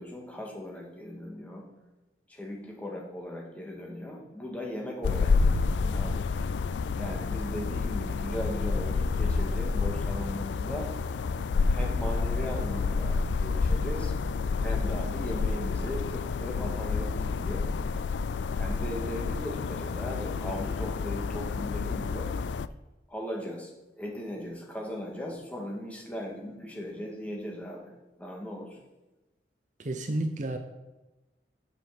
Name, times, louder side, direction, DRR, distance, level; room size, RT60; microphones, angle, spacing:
voice 1, 0.0-1.6 2.3-6.3 7.0-10.9 11.6-14.1 14.6-17.6 18.5-22.3 23.1-23.7 24.0-27.9 28.2-28.8, equal, 10° left, -1 dB, 1.9 m, -38 dB
sound 1, 5.0-22.7, left 4 dB, 85° left, 0.4 m, -29 dB
voice 2, 29.8-30.6, right 1 dB, 45° right, 6 dB, 0.7 m, -31 dB
7.5 x 7.3 x 6.0 m, 1.1 s
head